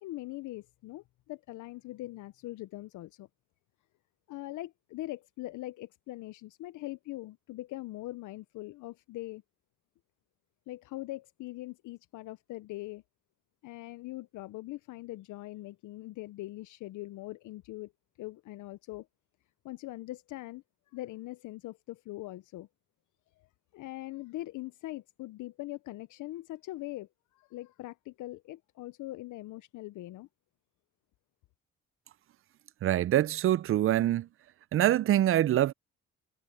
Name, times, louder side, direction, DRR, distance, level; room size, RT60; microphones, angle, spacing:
voice 1, 0.0-3.3 4.3-9.4 10.7-13.0 13.6-17.9 18.2-19.1 19.6-22.7 23.4-23.5 23.7-30.3, left 17 dB, 80° left, 0.6 m, -42 dB
voice 2, 32.8-34.3 34.7-35.7, right 12 dB, 45° right, 0.4 m, -25 dB
cardioid pair, 90°, 30 cm